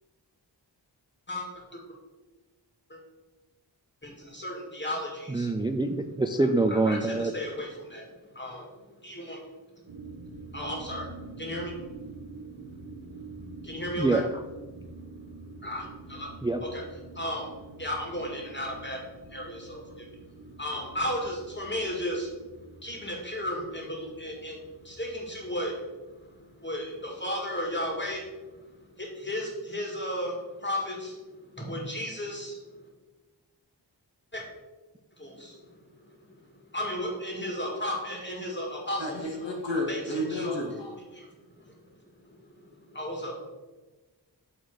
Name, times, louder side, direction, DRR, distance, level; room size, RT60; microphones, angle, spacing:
voice 1, 1.3-1.8 2.9-3.0 4.0-5.7 6.7-9.4 10.5-11.7 12.4-14.2 14.8-14.9 15.2-16.3 16.6-16.8 17.1-32.9 34.3-34.4 35.2-39.3 39.9-40.5 41.1-41.3 41.6-41.8 42.2-43.3, equal, 25° left, -1 dB, 2.0 m, -35 dB
voice 2, 5.3-7.3 14.0-14.3 16.4-16.6, right 2 dB, 10° right, 7 dB, 0.3 m, -25 dB
sound 1, 9.9-28.8, right 3 dB, 90° right, 1.0 m, -47 dB
voice 3, 39.0-40.9, left 1 dB, 80° left, -1 dB, 1.7 m, -31 dB
8.0 x 4.0 x 4.8 m, 1.2 s
wide cardioid pair, 65°, 43 cm